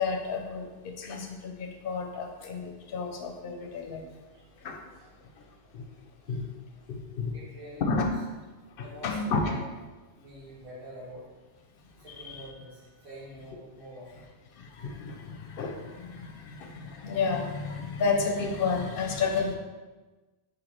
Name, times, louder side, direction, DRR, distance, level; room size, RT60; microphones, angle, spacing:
voice 1, 0.0-4.1 4.6-4.8 5.7-5.8 6.3-6.4 6.9-7.3 7.8-8.1 8.8-9.4 12.1-12.4 14.5-19.6, left 4 dB, 60° left, 3 dB, 0.7 m, -31 dB
voice 2, 4.3-4.6 4.9-5.1 6.3-6.4 7.3-7.8 8.8-9.6 10.2-11.2 12.0-14.3, equal, 30° right, -9 dB, 1.3 m, -46 dB
4.5 x 2.6 x 4.2 m, 1.2 s
omnidirectional pair, 1.2 m